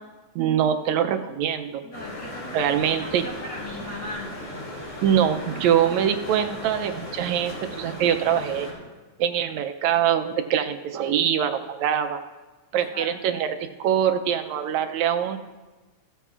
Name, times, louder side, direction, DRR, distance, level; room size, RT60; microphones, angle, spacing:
voice 1, 0.4-1.8 2.5-3.2 5.0-8.7 9.2-12.2 12.7-15.4, right 9 dB, 80° right, 7 dB, 1.9 m, -23 dB
voice 2, 1.8-4.8 12.7-13.3, left 1 dB, 60° left, -3 dB, 1.2 m, -39 dB
sound 1, 1.9-8.7, left 1 dB, 85° left, 4.3 m, -37 dB
15.5 x 13.5 x 2.4 m, 1.2 s
omnidirectional pair, 3.3 m